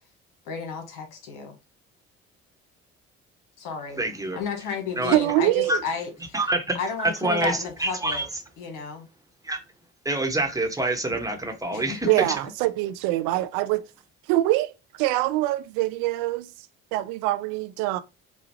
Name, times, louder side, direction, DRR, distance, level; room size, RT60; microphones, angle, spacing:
voice 1, 0.4-1.6 3.6-4.0 4.3-6.4 6.7-8.2 8.6-9.1 11.7-12.1, left 5 dB, 70° left, 1.4 m, -33 dB
voice 2, 4.0-4.4 5.0-5.1 5.7-5.8 6.3-8.2 9.4-9.6 10.0-12.2, right 2 dB, 10° right, 1.2 m, -26 dB
voice 3, 5.1-5.8 12.0-13.8 14.3-14.7 15.0-16.5 16.9-18.0, right 16 dB, 75° right, 0.5 m, -24 dB
5.1 x 2.4 x 2.8 m
hypercardioid pair, 60°, 33 cm